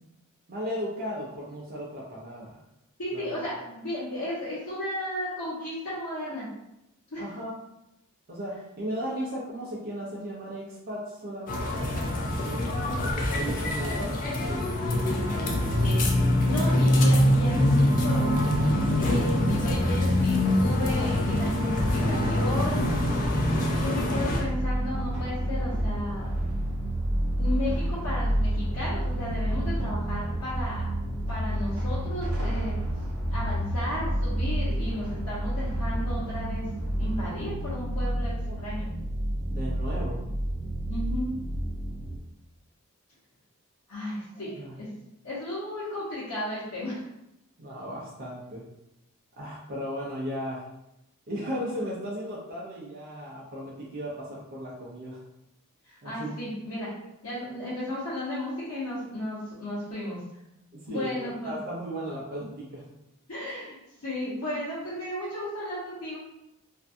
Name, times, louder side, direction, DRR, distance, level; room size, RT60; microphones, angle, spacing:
voice 1, 0.5-2.6 3.1-3.5 7.2-7.5 8.3-14.8 23.8-24.1 38.4-38.6 39.5-40.2 44.6-44.7 47.6-48.6 49.4-50.7 51.3-55.2 56.0-56.3 60.7-62.9, equal, 45° right, -5 dB, 0.5 m, -36 dB
voice 2, 3.0-6.5 7.1-7.2 16.4-18.6 19.0-22.8 23.7-26.4 27.4-30.8 31.3-32.7 33.3-36.7 37.0-38.9 40.9-41.3 43.9-44.9 45.2-47.1 55.8-56.9 57.2-60.2 60.9-61.6 63.3-66.2, left 1 dB, 75° left, -11 dB, 0.9 m, -34 dB
sound 1, 11.5-24.4, left 1 dB, 40° left, 0.4 m, -24 dB
sound 2, 19.6-37.5, right 1 dB, 90° right, 0.8 m, -43 dB
sound 3, 24.4-42.2, right 1 dB, 10° right, 0.8 m, -29 dB
2.5 x 2.2 x 2.5 m, 0.86 s
head